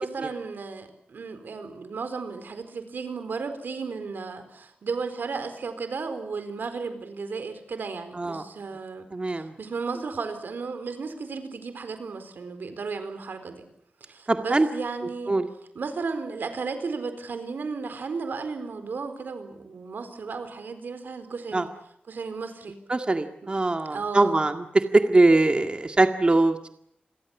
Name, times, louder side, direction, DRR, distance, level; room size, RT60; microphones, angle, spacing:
voice 1, 0.0-13.6 14.0-15.3 15.7-21.7 22.1-22.8 23.4-23.5 23.9-24.4, right 4 dB, 90° right, 9 dB, 4.3 m, -34 dB
voice 2, 9.1-9.5 14.3-14.7 15.3-15.5 21.5-21.7 22.9-24.6 24.9-26.7, right 2 dB, 30° right, 6 dB, 1.9 m, -22 dB
29.0 x 22.5 x 7.2 m, 0.72 s
wide cardioid pair, 95°, 3 cm